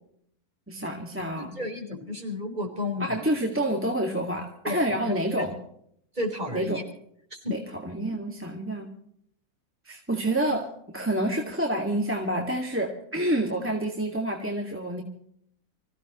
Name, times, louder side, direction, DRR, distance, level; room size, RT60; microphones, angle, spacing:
voice 1, 0.7-1.6 3.0-5.6 6.5-6.8 7.5-8.9 9.9-15.0, right 1 dB, 10° right, 0 dB, 2.0 m, -28 dB
voice 2, 1.4-3.2 4.6-5.6 6.1-6.8 7.3-7.5, left 2 dB, 30° right, 2 dB, 4.3 m, -33 dB
25.5 x 16.0 x 3.1 m, 0.68 s
omnidirectional pair, 1.6 m